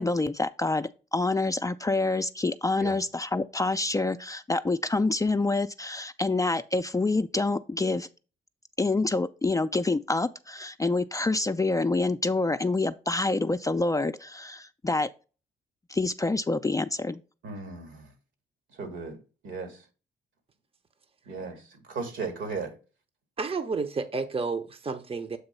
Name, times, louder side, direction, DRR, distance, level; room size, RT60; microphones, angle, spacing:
voice 1, 0.0-8.1 8.8-15.1 15.9-17.2, left 3 dB, 15° left, 0.4 m, -27 dB
voice 2, 17.4-18.1 18.7-19.8 21.3-22.8, right 4 dB, 75° right, 2.2 m, -36 dB
voice 3, 23.4-25.4, right 4 dB, 30° right, 0.8 m, -31 dB
7.9 x 2.9 x 5.5 m
supercardioid pair, 60°, 20 cm